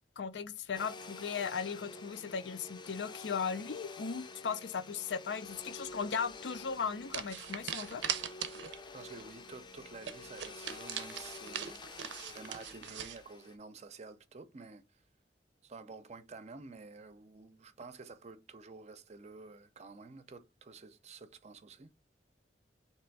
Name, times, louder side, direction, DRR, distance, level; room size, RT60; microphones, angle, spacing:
voice 1, 0.2-8.0, left 6 dB, 85° left, 0.5 m, -37 dB
Domestic sounds home sounds, 0.7-13.6, left 3 dB, 25° left, 0.5 m, -49 dB
sound 1, 6.3-6.5 7.1-8.9 9.2-9.3 9.6-9.7 10.0-13.2, right 9 dB, 85° right, 0.5 m, -40 dB
voice 2, 8.9-11.8 12.3-15.0 15.6-21.9, right 4 dB, 40° right, 0.5 m, -50 dB
3.4 x 2.9 x 4.5 m
head